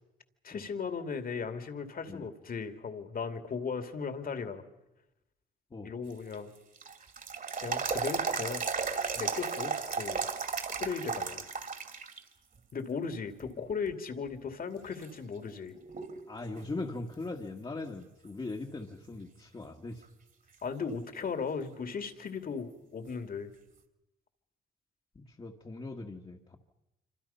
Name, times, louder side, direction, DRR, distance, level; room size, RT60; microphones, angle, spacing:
voice 1, 0.4-4.6 5.8-6.5 7.6-8.7 9.2-10.3 10.8-11.4 12.7-15.7 20.6-23.5, left 5 dB, 45° left, 8 dB, 2.5 m, -37 dB
sound 1, 6.1-12.2 12.6-12.7 13.4-13.9 14.5-14.6 15.0-16.3 16.6-16.7 20.0-20.1 23.1-23.2, right 5 dB, 45° right, 2.7 m, -35 dB
voice 2, 16.3-20.0 25.2-26.6, left 2 dB, 25° left, 0 dB, 1.8 m, -40 dB
26.5 x 26.0 x 5.7 m, 0.92 s
cardioid pair, 90°, 20 cm